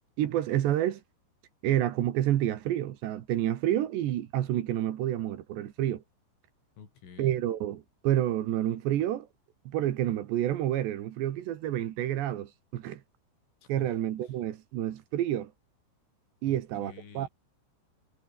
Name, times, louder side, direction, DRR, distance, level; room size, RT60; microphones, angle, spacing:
voice 1, 0.2-1.0 1.6-6.0 7.2-9.3 9.7-13.0 13.7-15.5 16.4-17.3, right 12 dB, 70° right, 3.5 m, -29 dB
voice 2, 6.8-7.4 13.6-13.9 14.2-14.4 16.5-17.3, left 7 dB, 80° left, 7.6 m, -50 dB
omnidirectional pair, 5.6 m